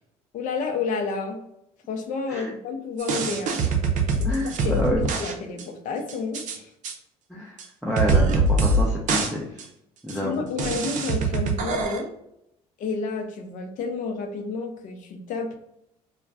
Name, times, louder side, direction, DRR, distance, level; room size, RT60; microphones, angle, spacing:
voice 1, 0.3-1.4 1.9-3.6 4.2-4.8 5.2-6.7 10.1-12.2 12.8-15.6, left 4 dB, 60° left, 5 dB, 0.5 m, -30 dB
sound 1, 3.0-5.3 5.6-5.7 6.1-6.6 6.8-6.9 7.6-7.7 8.0-8.8 9.1-9.3 9.6-9.7 10.1-10.2 10.6-12.0, right 3 dB, 55° right, 0.5 m, -23 dB
voice 2, 4.2-5.1 7.3-9.7 10.0-10.5, left 1 dB, 5° right, -4 dB, 0.5 m, -28 dB
2.4 x 2.1 x 3.4 m, 0.79 s
supercardioid pair, 80°, 15 cm